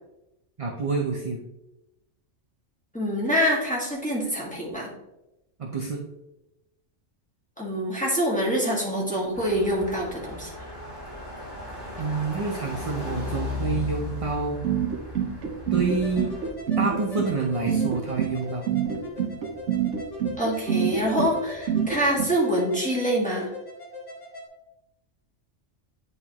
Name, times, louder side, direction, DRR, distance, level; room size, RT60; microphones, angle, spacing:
voice 1, 0.6-1.4 5.6-6.0 12.0-14.6 15.7-16.3 16.8-18.7, right 4 dB, 40° right, 1 dB, 0.5 m, -28 dB
voice 2, 2.9-4.9 7.6-10.5 20.4-23.5, equal, 5° left, -4 dB, 1.6 m, -25 dB
sound 1, 9.3-16.5, left 2 dB, 60° left, 2.7 m, -36 dB
sound 2, 14.6-22.3, right 8 dB, 80° right, 1.1 m, -26 dB
sound 3, 15.7-24.5, left 2 dB, 80° left, 1.7 m, -39 dB
9.4 x 4.0 x 2.9 m, 0.93 s
omnidirectional pair, 1.2 m